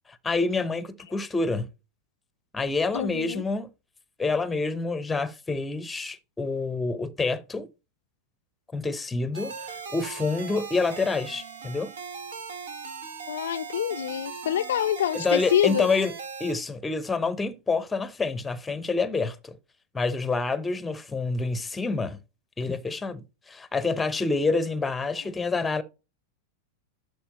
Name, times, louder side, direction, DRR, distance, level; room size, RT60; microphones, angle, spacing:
voice 1, 0.2-1.7 2.5-3.7 4.2-7.7 8.7-11.9 15.1-16.1 16.4-19.6 19.9-22.2 22.6-25.8, left 3 dB, 10° left, 0.8 m, -27 dB
voice 2, 2.9-3.4 13.3-15.9, left 10 dB, 60° left, 0.4 m, -26 dB
sound 1, 9.3-16.5, right 5 dB, 60° right, 1.1 m, -39 dB
11.5 x 4.7 x 2.9 m
figure-of-eight pair, 90°, 0 cm